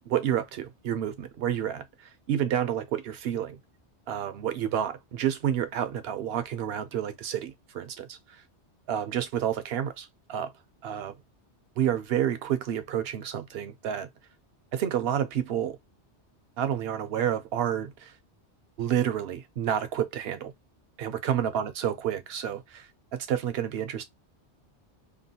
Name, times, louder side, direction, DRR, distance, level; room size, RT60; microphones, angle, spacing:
voice 1, 0.1-3.6 4.1-8.4 8.9-10.5 10.8-11.1 11.8-14.1 14.7-15.8 16.6-18.1 18.8-20.5 21.0-24.1, right 10 dB, 65° right, 0.8 m, -29 dB
3.0 x 2.2 x 2.7 m
omnidirectional pair, 1.2 m